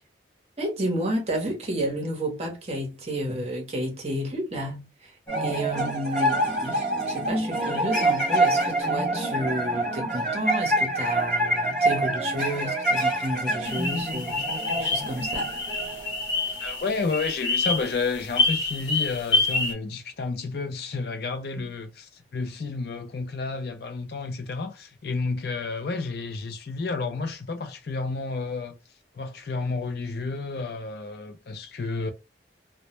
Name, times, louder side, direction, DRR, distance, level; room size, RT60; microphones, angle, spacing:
voice 1, 0.6-5.1 5.4-14.4 14.7-15.5 16.5-16.6, right 1 dB, 35° right, 0.7 m, -31 dB
sound 1, 5.3-16.8, right 1 dB, 5° left, 0.9 m, -26 dB
sound 2, 13.6-19.7, left 3 dB, 80° left, 0.8 m, -27 dB
voice 2, 16.6-28.8 29.1-32.1, left 4 dB, 60° left, 0.4 m, -31 dB
2.1 x 2.0 x 2.9 m
head